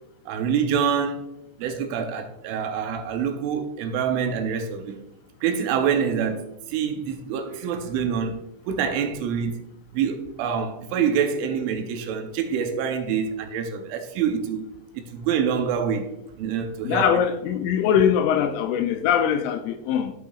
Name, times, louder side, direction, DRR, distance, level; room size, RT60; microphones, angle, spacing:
voice 1, 0.3-1.3 1.6-5.0 5.4-9.6 9.9-16.1 16.4-17.1, right 7 dB, 80° right, 3.1 m, -26 dB
voice 2, 16.8-20.1, left 8 dB, 85° left, 2.8 m, -22 dB
13.5 x 5.6 x 2.4 m
omnidirectional pair, 5.7 m